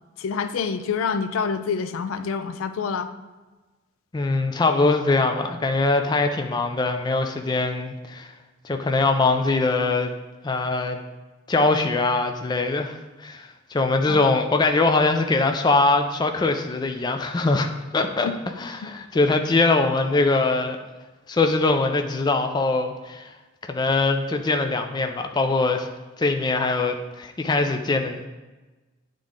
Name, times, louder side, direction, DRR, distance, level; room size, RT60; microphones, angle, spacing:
voice 1, 0.2-3.1 14.1-14.2 18.2-18.4 18.8-18.9, left 5 dB, 90° left, 11 dB, 0.4 m, -27 dB
voice 2, 4.1-8.3 8.6-10.1 10.4-11.0 11.5-18.3 18.6-20.8 21.3-23.3 23.6-25.9 26.2-28.2, left 3 dB, 20° left, 5 dB, 0.3 m, -22 dB
9.0 x 3.7 x 3.6 m, 1.2 s
head